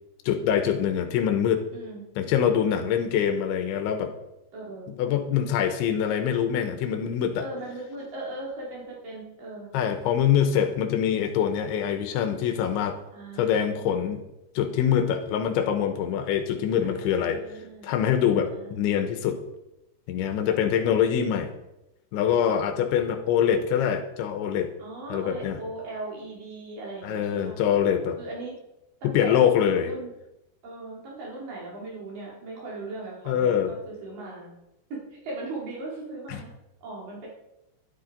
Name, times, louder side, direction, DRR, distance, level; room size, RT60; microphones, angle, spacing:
voice 1, 0.3-1.7 2.2-4.1 4.9-7.4 9.7-13.0 13.4-14.2 14.6-17.4 17.8-19.4 20.1-21.5 22.1-24.7 25.1-25.6 27.0-28.2 29.0-29.9 33.3-33.7 36.3-36.4, left 9 dB, 75° left, 8 dB, 3.2 m, -24 dB
voice 2, 1.7-2.0 2.7-3.2 4.5-4.9 7.4-9.7 13.1-14.1 16.8-17.9 18.3-19.1 20.4-20.9 21.3-21.5 22.2-22.6 24.8-27.6 28.2-28.5 29.0-29.5 29.8-30.1 30.6-34.5 34.9-36.5 36.8-37.3, right 2 dB, 45° right, -4 dB, 5.6 m, -39 dB
12.5 x 12.5 x 5.2 m, 0.90 s
omnidirectional pair, 5.9 m